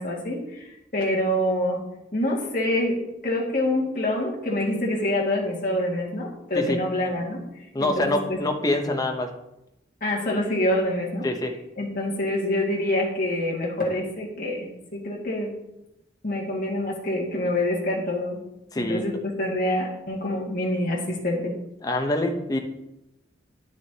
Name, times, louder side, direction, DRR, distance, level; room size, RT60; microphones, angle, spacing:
voice 1, 0.0-1.8 2.1-7.4 7.8-8.4 10.0-11.3 11.8-14.7 14.9-15.5 16.2-18.4 18.8-21.5, left 1 dB, 50° left, -4 dB, 1.9 m, -26 dB
voice 2, 7.7-9.3 11.2-11.5 18.7-19.0 21.8-22.6, left 1 dB, 20° left, 4 dB, 0.7 m, -25 dB
10.5 x 6.3 x 2.8 m, 0.89 s
head